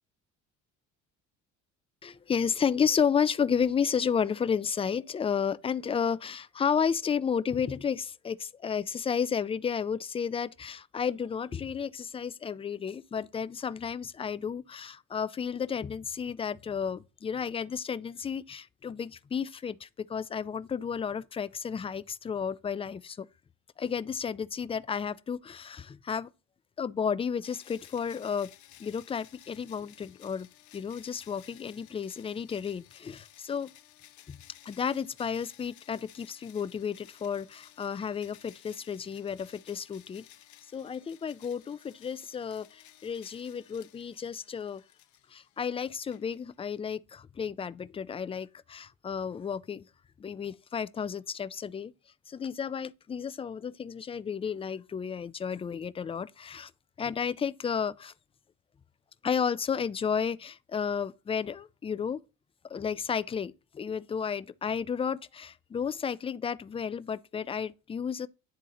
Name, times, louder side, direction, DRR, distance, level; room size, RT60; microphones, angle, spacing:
voice 1, 2.0-23.3 23.8-26.3 26.8-28.5 28.8-30.5 30.7-33.7 34.3-34.4 34.7-40.3 40.7-44.8 45.3-49.9 50.2-51.9 52.3-56.7 57.0-58.1 59.2-62.2 62.7-68.3, left 7 dB, 20° left, 0.3 m, -32 dB
sound 1, 27.4-46.8, left 13 dB, 65° left, 0.7 m, -56 dB
10.5 x 3.7 x 2.7 m
cardioid pair, 110°, 32 cm